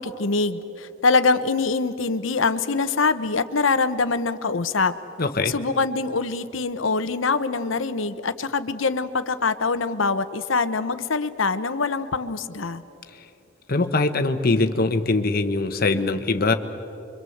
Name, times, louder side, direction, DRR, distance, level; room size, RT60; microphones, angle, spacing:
voice 1, 0.0-4.9 5.5-12.8, left 4 dB, 75° left, 11 dB, 1.0 m, -24 dB
voice 2, 5.2-5.5 13.7-16.5, left 3 dB, 50° left, 8 dB, 1.2 m, -22 dB
26.0 x 24.0 x 7.9 m, 3.0 s
head